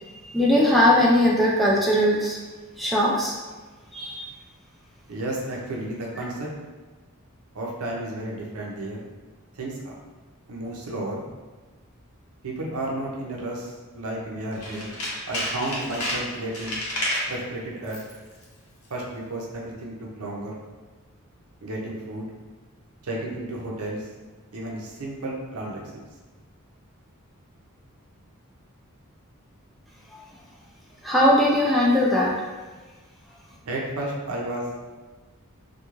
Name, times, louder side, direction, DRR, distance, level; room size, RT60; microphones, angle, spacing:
voice 1, 0.2-2.4 2.8-3.3 3.9-4.3 31.0-32.3, left 1 dB, ahead, -5 dB, 0.3 m, -20 dB
voice 2, 5.1-6.5 7.5-9.0 9.6-9.9 10.5-11.2 12.4-14.9 15.3-16.8 17.3-18.0 18.9-20.6 21.6-22.3 23.0-24.0 24.5-26.0 33.7-34.7, right 1 dB, 80° right, -2 dB, 0.6 m, -32 dB
Tools, 14.5-17.3 17.8-18.2 18.4-18.5, left 1 dB, 75° left, 0.7 m, -30 dB
2.4 x 2.3 x 3.0 m, 1.3 s
head